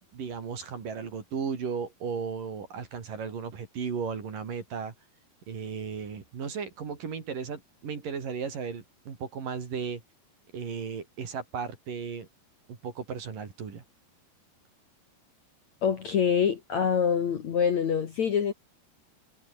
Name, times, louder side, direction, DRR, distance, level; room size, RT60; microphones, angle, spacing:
voice 1, 0.1-4.9 5.5-10.0 10.5-12.3 12.7-13.8, right 6 dB, 50° right, 5.0 m, -35 dB
voice 2, 15.8-18.5, left 7 dB, 55° left, 2.5 m, -25 dB
omnidirectional pair, 5.0 m